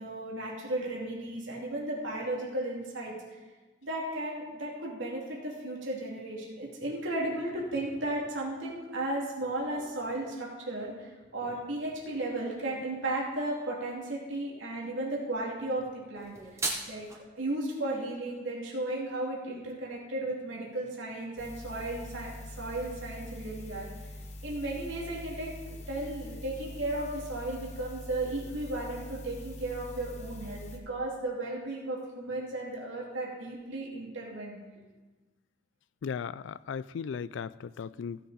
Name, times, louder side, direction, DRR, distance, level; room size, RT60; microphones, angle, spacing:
voice 1, 0.0-3.1 3.8-16.4 16.9-17.1 17.4-23.9 24.4-25.5 25.9-34.6, right 1 dB, 75° right, -4 dB, 2.6 m, -35 dB
sound 1, 16.1-17.2, right 2 dB, 15° right, 1.2 m, -35 dB
sound 2, 21.4-30.8, left 1 dB, 35° left, 1.0 m, -44 dB
voice 2, 36.0-38.2, left 6 dB, 70° left, 18 dB, 0.3 m, -36 dB
16.5 x 6.7 x 4.1 m, 1.2 s
head